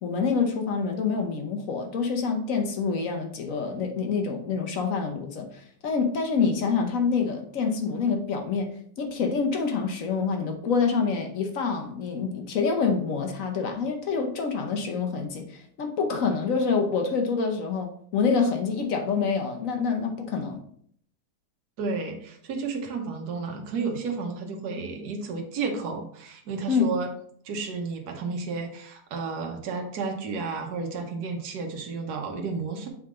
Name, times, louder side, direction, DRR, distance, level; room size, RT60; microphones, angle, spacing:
voice 1, 0.0-8.7 9.0-20.6 26.7-26.9, left 5 dB, 60° left, 4 dB, 1.2 m, -26 dB
voice 2, 21.8-27.1 27.4-32.9, right 4 dB, 75° right, 3 dB, 1.5 m, -32 dB
7.6 x 3.6 x 3.7 m, 0.63 s
omnidirectional pair, 1.7 m